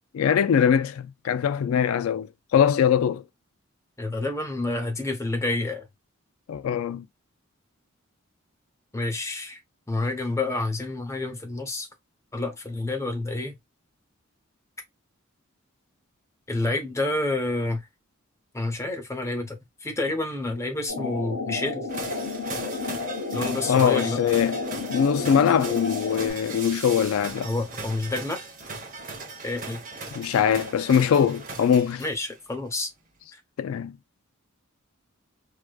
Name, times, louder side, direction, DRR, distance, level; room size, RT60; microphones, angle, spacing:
voice 1, 0.1-3.2 6.5-7.0 23.7-24.6 24.9-27.5 30.1-32.0 33.6-34.0, left 8 dB, 85° left, 0.3 m, -22 dB
voice 2, 4.0-5.9 8.9-9.6 9.9-11.9 12.3-13.5 16.5-17.8 18.5-21.9 23.3-24.2 27.4-28.4 29.4-29.8 32.0-32.9 33.3-33.4, left 2 dB, 15° left, 0.7 m, -29 dB
sound 1, 20.9-26.3, left 4 dB, 70° left, 1.8 m, -31 dB
sound 2, 21.9-32.3, right 3 dB, 40° right, 0.9 m, -38 dB
4.7 x 2.1 x 2.3 m
head